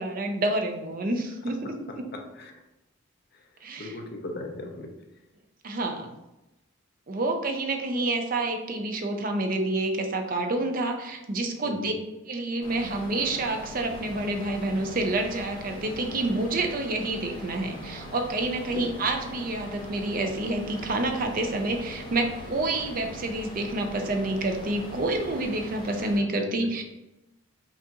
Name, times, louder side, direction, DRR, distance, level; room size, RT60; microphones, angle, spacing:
voice 1, 0.0-2.1 3.6-4.0 5.6-6.1 7.1-11.9 12.3-26.8, right 2 dB, 40° right, 4 dB, 0.5 m, -28 dB
voice 2, 2.1-2.5 3.8-4.9 11.6-11.9 18.7-18.9 26.4-26.7, left 2 dB, 50° left, 2 dB, 0.6 m, -37 dB
sound 1, 12.6-26.2, equal, 20° left, 1.0 m, -41 dB
5.9 x 2.5 x 2.8 m, 0.95 s
head